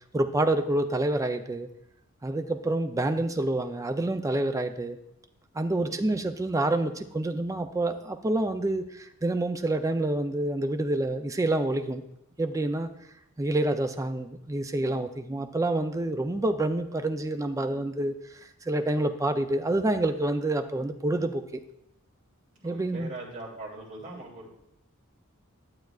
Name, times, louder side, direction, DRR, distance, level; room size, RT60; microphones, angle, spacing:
voice 1, 0.1-1.7 2.2-5.0 5.5-12.0 12.4-12.9 13.4-18.2 18.7-21.6 22.6-23.1, right 2 dB, 15° right, 7 dB, 0.4 m, -27 dB
voice 2, 5.8-6.2 22.6-24.5, right 2 dB, 35° right, -5 dB, 3.0 m, -41 dB
11.5 x 7.7 x 2.4 m, 0.77 s
head